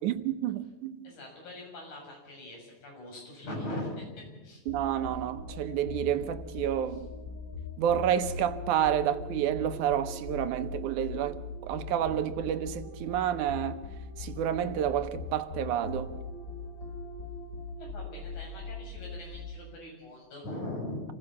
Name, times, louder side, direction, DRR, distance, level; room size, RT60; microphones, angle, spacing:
voice 1, 0.0-1.0 4.7-7.1 7.8-13.8 14.2-16.2, right 10 dB, 90° right, 2.5 m, -29 dB
voice 2, 1.0-4.6 6.9-7.0 17.8-21.0, left 1 dB, 80° left, 8.3 m, -41 dB
sound 1, 4.7-19.8, left 4 dB, 40° left, 2.9 m, -41 dB
27.5 x 15.5 x 7.2 m
omnidirectional pair, 3.4 m